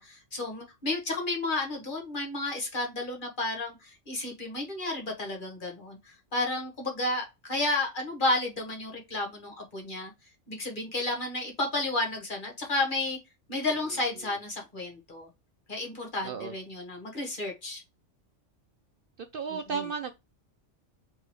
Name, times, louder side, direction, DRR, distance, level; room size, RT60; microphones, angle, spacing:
voice 1, 0.0-10.1 10.5-13.2 13.5-15.3 15.7-17.8 19.5-19.8, left 2 dB, 45° left, 1.6 m, -32 dB
voice 2, 16.2-16.5 19.3-20.1, right 6 dB, 60° right, 0.6 m, -33 dB
4.7 x 3.0 x 3.1 m
omnidirectional pair, 1.3 m